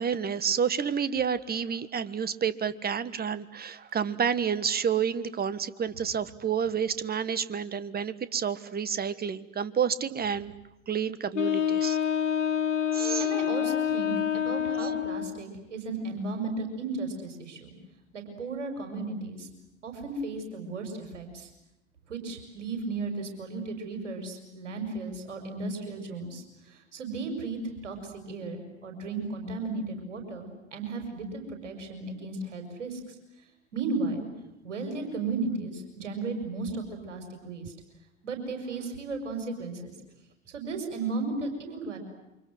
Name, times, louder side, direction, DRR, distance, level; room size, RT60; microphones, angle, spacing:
voice 1, 0.0-10.5 10.9-12.0 12.9-13.4 14.7-15.0, right 7 dB, 25° right, 15 dB, 1.5 m, -29 dB
Wind instrument woodwind instrument, 11.3-15.4, left 9 dB, 85° left, 1.3 m, -27 dB
voice 2, 13.2-17.7 18.1-19.5 19.8-21.5 22.1-33.1 33.7-34.3 34.6-37.7 38.2-39.9 40.5-42.0, right 3 dB, 75° right, 5 dB, 5.8 m, -35 dB
28.5 x 25.0 x 7.9 m, 0.92 s
figure-of-eight pair, 75°, 36 cm